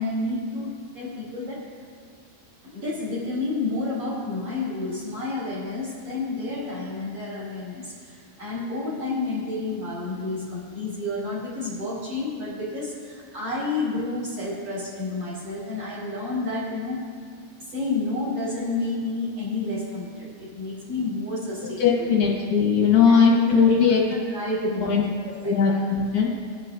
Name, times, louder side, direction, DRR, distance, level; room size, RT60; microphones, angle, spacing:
voice 1, 0.0-1.7 2.6-17.2 17.6-22.1 23.1-23.8 24.3-25.1 25.4-25.8, left 2 dB, 35° right, -8 dB, 4.9 m, -30 dB
voice 2, 21.6-24.0 24.6-25.0 25.4-26.3, left 6 dB, 60° left, -4 dB, 2.2 m, -19 dB
23.0 x 10.5 x 2.8 m, 2.1 s
omnidirectional pair, 5.8 m